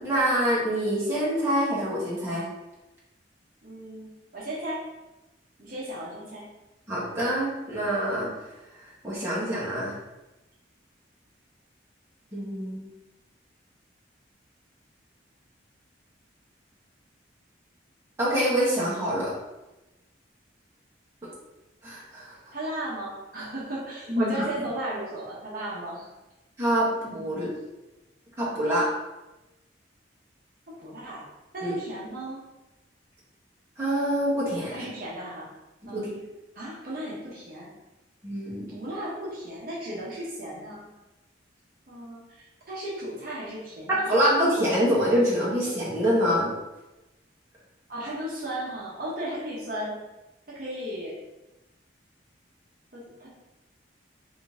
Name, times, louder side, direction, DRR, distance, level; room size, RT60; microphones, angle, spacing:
voice 1, 0.0-2.4 6.9-8.3 9.0-9.9 12.3-12.9 18.2-19.3 21.8-22.3 24.1-24.4 26.6-27.5 28.4-28.9 31.6-31.7 33.8-34.8 35.9-36.1 38.2-38.7 43.9-46.5, equal, 15° right, -9 dB, 1.0 m, -25 dB
voice 2, 3.6-4.8 5.6-6.5 22.5-26.1 30.8-31.2 31.5-32.4 34.7-35.5 35.9-36.0 36.5-37.7 38.7-40.9 41.9-44.1 47.9-50.0 50.5-51.2 52.9-53.3, right 1 dB, 50° right, -6 dB, 0.9 m, -35 dB
3.7 x 2.6 x 3.5 m, 1.0 s
head